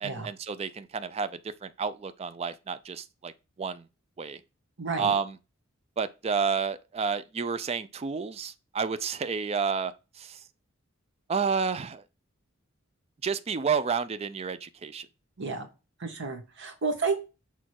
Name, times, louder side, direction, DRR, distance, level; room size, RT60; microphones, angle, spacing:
voice 1, 0.0-3.3 3.6-3.8 4.2-4.4 5.0-5.3 6.0-10.4 11.3-12.0 13.2-15.1, right 5 dB, 30° right, 0.4 m, -30 dB
voice 2, 4.8-5.1 15.4-15.7 16.0-17.2, right 4 dB, 60° right, 1.6 m, -31 dB
6.4 x 4.0 x 4.6 m
head